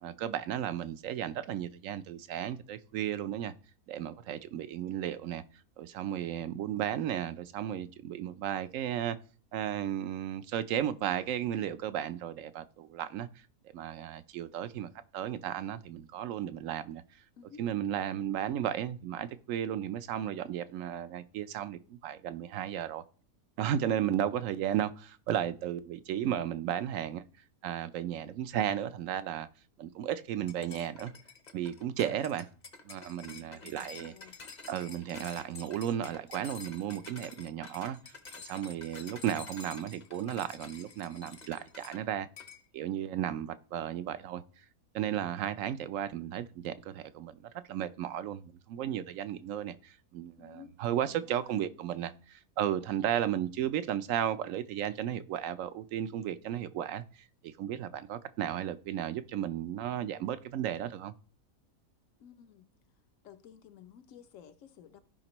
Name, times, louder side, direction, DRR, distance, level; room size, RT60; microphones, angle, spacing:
voice 1, 0.0-3.5 3.9-5.4 5.8-9.2 9.5-13.3 13.7-17.0 17.6-23.0 23.6-27.2 27.6-29.5 29.8-31.1 31.5-32.5 32.8-34.1 34.7-42.3 42.7-44.4 44.9-61.1, right 10 dB, 70° right, 0.9 m, -34 dB
voice 2, 17.4-17.7 33.1-34.5 50.4-51.6 62.2-62.7 63.2-65.0, left 9 dB, 65° left, 1.0 m, -54 dB
sound 1, 30.5-42.0 42.4-42.6, left 4 dB, 40° left, 0.8 m, -49 dB
15.0 x 5.1 x 3.0 m
omnidirectional pair, 1.5 m